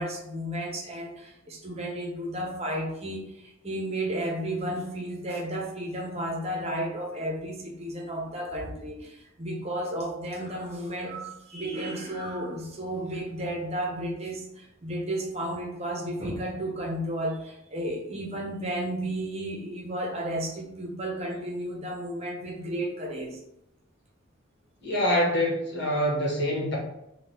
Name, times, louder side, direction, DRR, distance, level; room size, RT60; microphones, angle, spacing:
voice 1, 0.0-23.4, right 1 dB, 30° right, 0 dB, 0.7 m, -33 dB
voice 2, 24.8-26.8, equal, 55° left, -4 dB, 1.3 m, -25 dB
3.6 x 2.3 x 4.4 m, 0.82 s
head